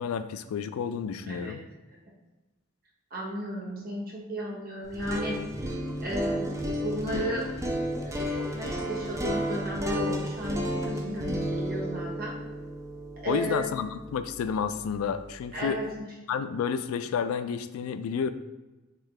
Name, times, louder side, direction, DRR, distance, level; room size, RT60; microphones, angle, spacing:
voice 1, 0.0-1.6 13.3-15.8 16.3-18.3, left 6 dB, 80° left, 11 dB, 0.3 m, -30 dB
voice 2, 3.1-5.4 6.0-6.5 6.8-7.5 8.0-12.3 13.2-13.7 15.5-16.1, right 1 dB, 45° right, -4 dB, 1.0 m, -34 dB
sound 1, 4.8-14.9, equal, 15° right, 0.4 m, -33 dB
3.7 x 2.7 x 3.2 m, 1.1 s
head